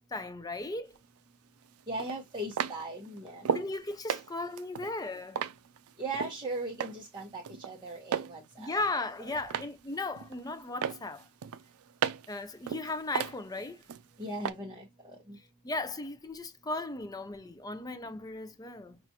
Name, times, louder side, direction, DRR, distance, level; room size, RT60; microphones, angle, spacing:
voice 1, 0.1-0.9 3.5-5.4 8.6-11.3 12.3-13.8 15.6-19.0, left 2 dB, 15° left, 0.5 m, -36 dB
sound 1, 1.0-1.1 2.0-3.7 4.1-6.4 6.8-7.2 7.4-8.4 8.7-9.8 10.2-10.5 10.8-12.4 12.7-14.0 14.4-14.5, right 7 dB, 85° right, 0.4 m, -34 dB
voice 2, 1.9-3.6 6.0-8.7 9.2-9.5 14.2-15.4, right 2 dB, 20° right, 1.1 m, -39 dB
5.8 x 2.5 x 2.9 m
head